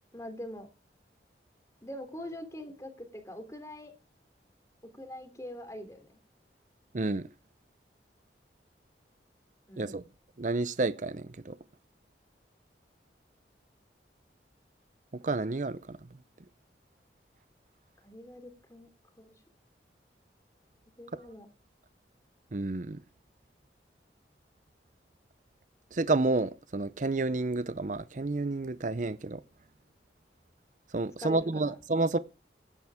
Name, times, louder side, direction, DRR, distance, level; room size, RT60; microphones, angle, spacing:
voice 1, 0.1-0.7 1.8-3.9 4.9-6.1 9.7-10.0 18.0-18.9 19.2-19.3 21.0-21.5 31.2-31.7, equal, 15° left, 3.1 m, -43 dB
voice 2, 6.9-7.3 9.8-10.0 10.4-11.6 15.1-16.0 22.5-23.0 25.9-29.4 30.9-32.2, right 3 dB, 45° right, 0.6 m, -30 dB
15.5 x 10.5 x 3.6 m
head